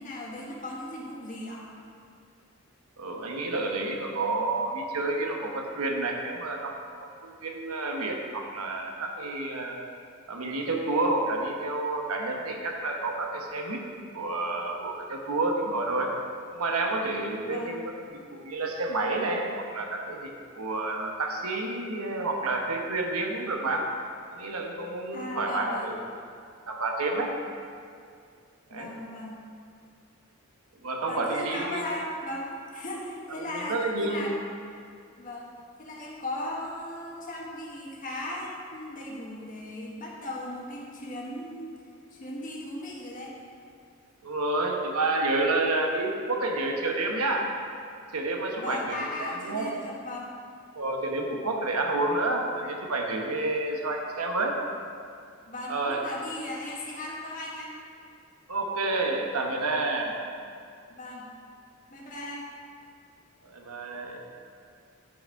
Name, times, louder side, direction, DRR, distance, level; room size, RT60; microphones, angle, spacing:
voice 1, 0.0-1.6 17.4-17.8 25.1-25.9 28.7-29.4 31.1-34.3 35.2-35.5 35.8-41.7 42.1-43.3 48.5-50.3 55.5-57.7 60.9-61.3 61.9-62.5, left 1 dB, 35° left, -3 dB, 1.4 m, -37 dB
voice 2, 3.0-6.7 7.2-9.8 10.3-13.8 14.1-16.1 16.5-23.9 24.3-25.9 26.7-27.4 28.7-29.0 30.8-31.8 33.5-34.3 44.2-47.5 48.1-49.7 50.8-54.6 55.7-56.0 58.5-60.2 63.4-64.2, right 2 dB, 90° right, 1 dB, 1.0 m, -29 dB
11.0 x 4.9 x 4.6 m, 2.3 s
head